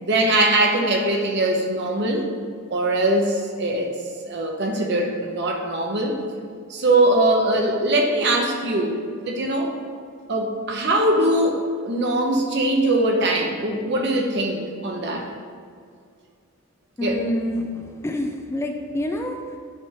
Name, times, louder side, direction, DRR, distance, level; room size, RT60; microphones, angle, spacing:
voice 1, 0.0-2.3 2.7-3.9 4.2-6.2 6.7-9.0 9.2-9.7 10.3-15.3 17.0-17.2, right 1 dB, 55° right, 1 dB, 0.8 m, -21 dB
voice 2, 17.0-19.6, left 1 dB, 15° left, 3 dB, 0.3 m, -27 dB
9.8 x 3.4 x 2.9 m, 2.2 s
head